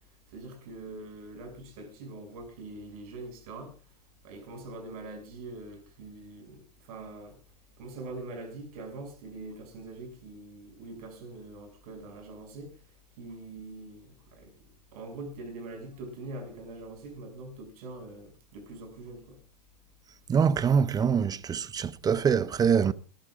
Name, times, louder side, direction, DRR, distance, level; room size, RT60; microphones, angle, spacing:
voice 1, 0.3-3.8 4.2-7.4 7.8-12.8 13.2-14.5 14.9-19.4, right 2 dB, 60° right, 6.9 m, -43 dB
voice 2, 20.3-22.9, right 7 dB, 20° right, 0.7 m, -24 dB
23.5 x 14.0 x 2.5 m
hypercardioid pair, 105°, 21 cm